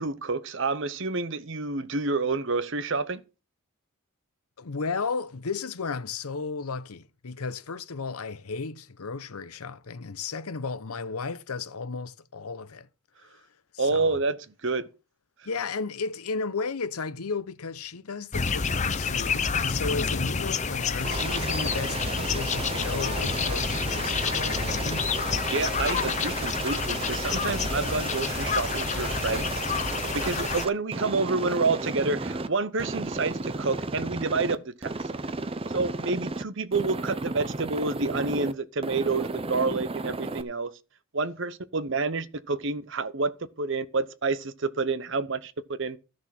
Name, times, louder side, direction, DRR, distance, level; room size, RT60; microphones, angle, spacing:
voice 1, 0.0-3.2 13.8-14.4 14.6-14.9 25.5-29.6 30.1-34.9 35.7-40.7 41.1-43.3 43.6-45.5 45.8-46.0, right 3 dB, 55° right, 0.9 m, -28 dB
voice 2, 4.6-12.9 13.7-14.2 15.4-25.3, left 4 dB, 85° left, 0.8 m, -34 dB
sound 1, 18.3-30.7, left 5 dB, 30° left, 0.7 m, -29 dB
Aircraft, 21.0-32.5 32.8-34.6 34.8-36.4 36.7-38.5 38.8-40.4, right 3 dB, 25° right, 0.7 m, -34 dB
13.0 x 6.4 x 5.9 m
head